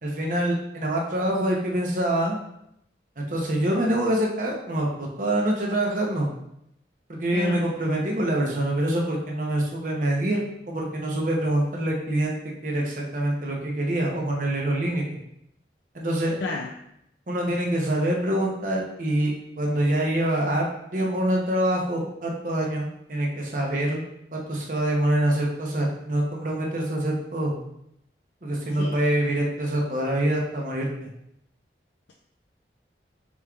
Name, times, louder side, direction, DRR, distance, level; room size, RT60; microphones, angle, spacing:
voice 1, 0.0-2.4 3.2-6.3 7.2-12.3 12.6-15.2 15.9-16.4 17.3-24.0 24.3-27.5 28.4-31.1, right 1 dB, 45° right, -1 dB, 0.8 m, -25 dB
voice 2, 7.3-7.7 16.4-16.7 28.7-29.0, left 3 dB, 75° left, 0 dB, 0.4 m, -31 dB
5.4 x 3.1 x 2.4 m, 0.77 s
head